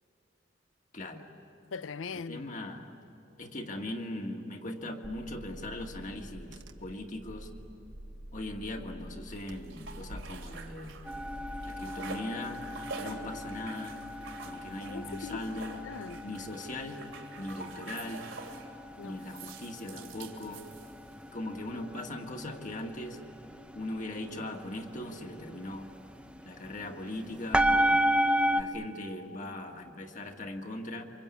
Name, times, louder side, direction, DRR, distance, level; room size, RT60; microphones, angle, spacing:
voice 1, 0.9-1.3 2.3-2.9 3.4-7.5 8.3-11.0 11.6-12.6 12.9-14.0 14.4-15.8 16.2-17.0 17.4-18.3 19.0-20.7 21.3-23.2 23.7-25.9 26.4-28.0 28.5-31.0, left 1 dB, 40° left, 1.9 m, -39 dB
voice 2, 1.7-2.6 14.9-16.2 19.0-19.2, left 5 dB, 90° left, 0.6 m, -41 dB
Car / Engine, 5.0-11.7, right 1 dB, 65° right, 1.1 m, -47 dB
sound 1, 9.3-11.2 11.5-18.7 19.2-21.2, right 4 dB, 85° right, 3.0 m, -46 dB
sound 2, 11.0-28.6, equal, 5° right, 0.7 m, -34 dB
28.0 x 25.0 x 8.4 m
head